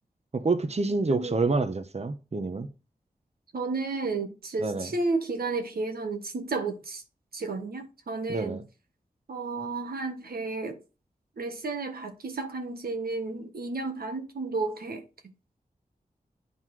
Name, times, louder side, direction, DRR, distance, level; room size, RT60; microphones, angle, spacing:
voice 1, 0.3-2.7 4.6-4.9 8.3-8.6, right 3 dB, 45° right, 0.9 m, -27 dB
voice 2, 1.1-1.4 3.5-7.0 7.3-8.6 9.3-10.8 11.4-15.0, right 3 dB, 90° right, 1.4 m, -32 dB
9.3 x 4.0 x 4.7 m
cardioid pair, 50°, 15 cm